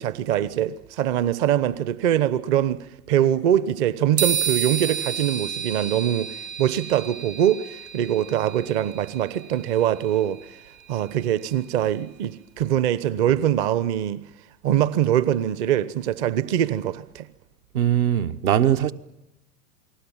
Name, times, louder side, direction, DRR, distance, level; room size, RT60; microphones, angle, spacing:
voice 1, 0.0-10.6 10.9-14.2 14.6-17.3, right 11 dB, 40° right, 1.0 m, -23 dB
sound 1, 4.2-11.8, right 7 dB, 80° right, 1.2 m, -32 dB
voice 2, 17.7-18.9, right 10 dB, 60° right, 1.3 m, -20 dB
29.0 x 19.5 x 7.2 m
figure-of-eight pair, 95°, 49 cm